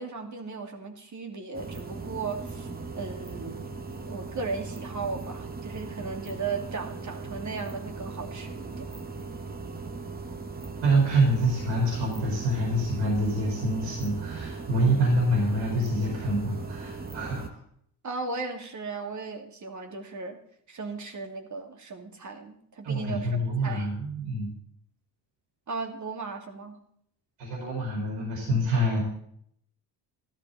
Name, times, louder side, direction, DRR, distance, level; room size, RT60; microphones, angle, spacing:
voice 1, 0.0-2.7 3.0-3.7 4.1-9.0 18.0-20.4 20.7-23.9 25.7-26.8, right 4 dB, 40° right, 4 dB, 2.6 m, -36 dB
sound 1, 1.5-17.5, right 4 dB, 20° right, 1.7 m, -38 dB
voice 2, 10.8-17.5 22.8-24.5 27.4-29.0, right 1 dB, 80° right, -3 dB, 4.6 m, -26 dB
13.5 x 13.0 x 4.2 m, 0.68 s
supercardioid pair, 80°, 42 cm